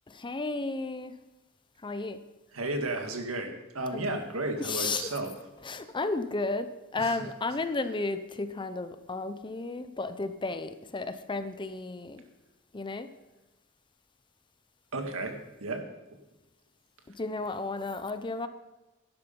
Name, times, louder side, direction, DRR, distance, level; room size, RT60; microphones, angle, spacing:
voice 1, 0.1-1.1 1.8-2.2 3.9-4.1 4.6-5.1 5.6-12.2 12.7-13.1 17.1-18.5, left 3 dB, 25° left, 10 dB, 0.6 m, -33 dB
voice 2, 2.5-5.3 7.0-7.3 14.9-15.9, right 2 dB, 80° right, 4 dB, 1.8 m, -33 dB
11.5 x 11.0 x 5.3 m, 1.0 s
head